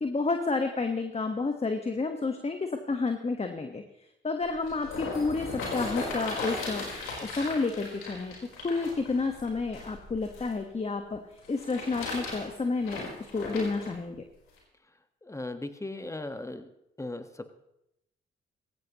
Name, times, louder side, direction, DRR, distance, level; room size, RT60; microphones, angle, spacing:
voice 1, 0.0-3.8 4.2-6.8 7.2-8.3 8.6-11.2 11.5-14.1, left 3 dB, 30° left, 5 dB, 1.4 m, -30 dB
sound 1, 4.4-10.5 11.4-13.9 14.6-14.7, left 3 dB, 85° left, 4.4 m, -37 dB
voice 2, 15.2-16.7 17.0-17.5, left 2 dB, 15° left, 8 dB, 1.5 m, -37 dB
17.5 x 15.0 x 3.0 m, 0.83 s
supercardioid pair, 55°, 20 cm